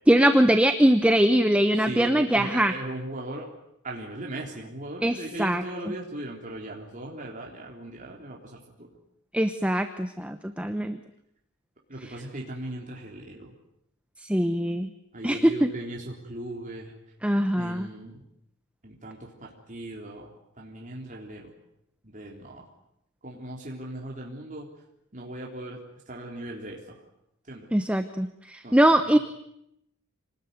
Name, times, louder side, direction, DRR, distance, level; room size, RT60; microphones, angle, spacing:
voice 1, 0.1-2.7 5.0-5.6 9.3-11.0 14.2-14.9 15.2-15.7 17.2-17.9 27.7-29.2, right 1 dB, 5° right, 8 dB, 0.9 m, -22 dB
voice 2, 1.8-3.5 3.8-8.9 11.9-13.5 15.1-16.9 17.6-18.3 18.8-21.5 22.0-22.7 23.2-24.7 25.1-25.8 26.1-27.0 27.5-27.7 28.6-29.2, right 1 dB, 35° right, -1 dB, 3.6 m, -38 dB
27.0 x 19.5 x 9.5 m, 0.79 s
head